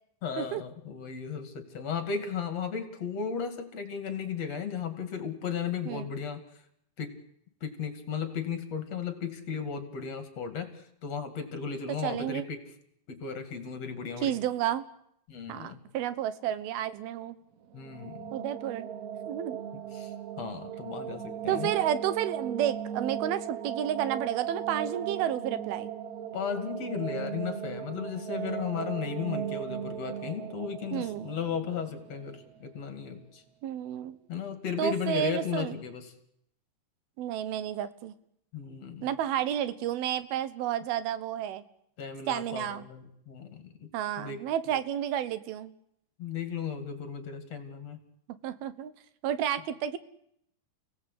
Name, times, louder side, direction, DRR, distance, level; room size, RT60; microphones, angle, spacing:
voice 1, 0.2-6.4 7.0-7.2 7.6-12.6 13.1-14.4 15.3-15.8 17.7-18.3 19.7-20.1 20.4-21.7 26.3-33.4 34.3-36.1 38.5-39.1 42.0-43.9 44.2-44.4 44.7-44.8 46.2-48.0, left 6 dB, 50° left, 8 dB, 3.2 m, -35 dB
voice 2, 12.0-12.4 14.2-14.8 15.5-17.4 18.3-18.9 19.3-19.6 21.5-25.9 30.9-31.3 33.6-34.2 34.8-35.8 37.2-38.2 39.0-41.6 42.3-42.9 43.9-45.7 48.4-48.9 49.2-50.0, right 11 dB, 85° right, 14 dB, 3.0 m, -31 dB
sound 1, 17.6-32.6, right 8 dB, 60° right, 2.2 m, -37 dB
29.5 x 17.5 x 8.4 m, 0.74 s
omnidirectional pair, 4.3 m